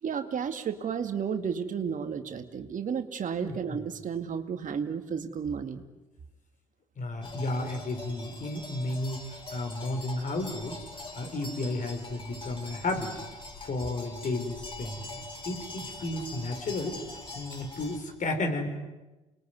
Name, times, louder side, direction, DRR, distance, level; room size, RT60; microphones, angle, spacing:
voice 1, 0.0-5.8, right 7 dB, 50° right, 7 dB, 2.3 m, -32 dB
voice 2, 7.0-10.8 11.1-13.1 13.6-15.2 15.5-17.0 17.3-18.8, left 2 dB, 45° left, 5 dB, 5.9 m, -33 dB
sound 1, 7.2-18.0, left 2 dB, 30° left, 7.0 m, -43 dB
28.5 x 21.5 x 9.7 m, 1.1 s
hypercardioid pair, 55°, 17 cm